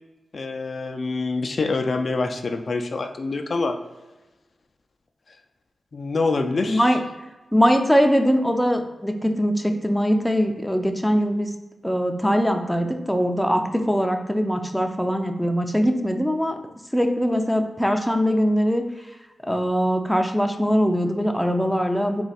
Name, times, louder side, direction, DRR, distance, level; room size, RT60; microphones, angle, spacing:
voice 1, 0.3-3.8 5.3-5.4 5.9-6.9, left 3 dB, 55° left, 6 dB, 0.3 m, -26 dB
voice 2, 6.7-7.0 7.5-11.5 11.8-16.6 16.9-18.8 19.5-22.2, equal, ahead, 4 dB, 0.5 m, -21 dB
4.1 x 2.3 x 4.0 m, 1.1 s
cardioid pair, 55°, 0 cm